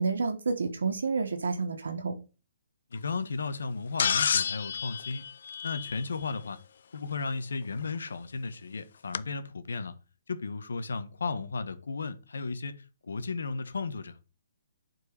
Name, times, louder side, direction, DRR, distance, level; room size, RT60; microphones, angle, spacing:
voice 1, 0.0-2.1, right 4 dB, 85° right, 1.5 m, -29 dB
voice 2, 2.9-5.2 5.6-6.6 6.9-9.9 10.3-14.2, left 4 dB, 85° left, 1.2 m, -34 dB
sound 1, 4.0-6.3 7.9-8.0 9.1-9.2, left 7 dB, 55° left, 0.4 m, -29 dB
8.0 x 4.6 x 4.9 m
hypercardioid pair, 165°, 0 cm